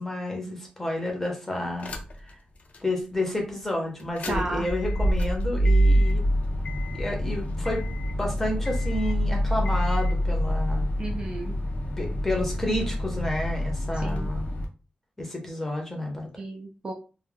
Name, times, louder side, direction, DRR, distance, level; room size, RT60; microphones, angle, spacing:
voice 1, 0.0-1.9 2.3-2.4 2.8-6.2 6.9-10.9 12.0-14.5 15.2-16.3, left 1 dB, 10° left, 0 dB, 0.7 m, -30 dB
sound 1, 1.8-2.3 2.7-2.8 4.0-14.6, equal, 50° left, 0.4 m, -26 dB
voice 2, 4.3-4.7 11.0-11.6 13.9-14.3 16.4-16.9, right 2 dB, 35° right, 1 dB, 0.3 m, -33 dB
2.2 x 2.1 x 3.2 m, 0.34 s
wide cardioid pair, 175°, 3 cm